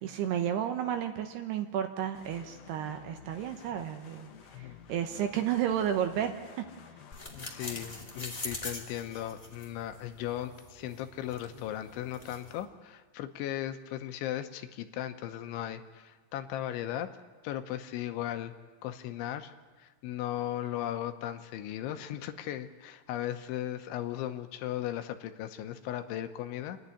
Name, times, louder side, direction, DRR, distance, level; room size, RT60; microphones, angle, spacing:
voice 1, 0.0-4.3 4.6-6.6, right 9 dB, 75° right, 6 dB, 2.7 m, -32 dB
sound 1, 2.1-8.3, left 7 dB, 65° left, 2.5 m, -53 dB
sound 2, 7.1-12.6, left 2 dB, 35° left, 0.6 m, -44 dB
voice 2, 7.3-17.1 17.4-18.5 18.8-26.8, left 12 dB, 80° left, 8 dB, 3.2 m, -37 dB
28.0 x 10.5 x 9.7 m, 1.4 s
omnidirectional pair, 5.4 m